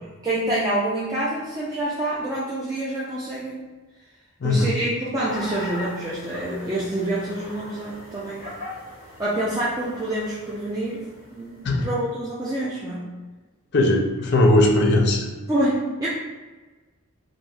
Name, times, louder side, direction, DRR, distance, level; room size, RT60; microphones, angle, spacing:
voice 1, 0.0-3.6 4.4-8.6 9.2-11.1 11.4-11.5 11.8-13.1 15.5-16.1, right 1 dB, 15° right, -8 dB, 0.3 m, -27 dB
voice 2, 4.4-4.7 11.6-11.9 13.7-15.3, left 1 dB, 50° left, 1 dB, 0.4 m, -19 dB
sound 1, 5.3-12.3, left 2 dB, 40° right, 1.0 m, -39 dB
3.2 x 2.4 x 2.3 m, 1.3 s
head